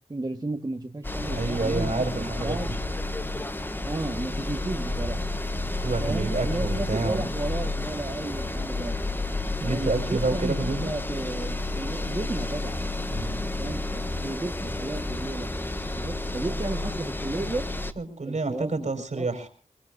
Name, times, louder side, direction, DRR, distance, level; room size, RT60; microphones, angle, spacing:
voice 1, 0.1-2.7 3.8-5.2 6.0-9.0 9.6-12.8 13.6-15.5 16.0-17.7 18.2-19.3, right 2 dB, 30° right, 4 dB, 1.4 m, -33 dB
sound 1, 1.0-17.9, left 2 dB, 15° left, 1.1 m, -31 dB
voice 2, 1.2-2.8 5.8-7.3 9.6-10.9 13.1-13.5 18.0-19.5, right 3 dB, 60° right, 7 dB, 4.5 m, -29 dB
23.5 x 21.0 x 2.6 m, 0.38 s
wide cardioid pair, 75°, 13 cm